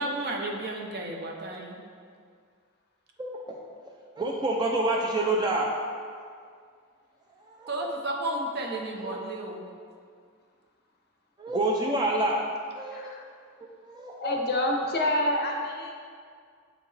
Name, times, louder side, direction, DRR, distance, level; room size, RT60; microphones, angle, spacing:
voice 1, 0.0-1.8 7.7-9.6, right 1 dB, 50° right, 1 dB, 0.8 m, -32 dB
voice 2, 3.2-3.6 4.2-5.7 7.5-7.9 9.0-9.2 11.4-12.4 12.8-13.1 13.8-14.1, right 2 dB, 20° right, -1 dB, 0.4 m, -27 dB
voice 3, 12.9-13.3 14.1-15.9, left 1 dB, 50° left, 1 dB, 0.7 m, -28 dB
7.6 x 4.5 x 3.3 m, 2.1 s
head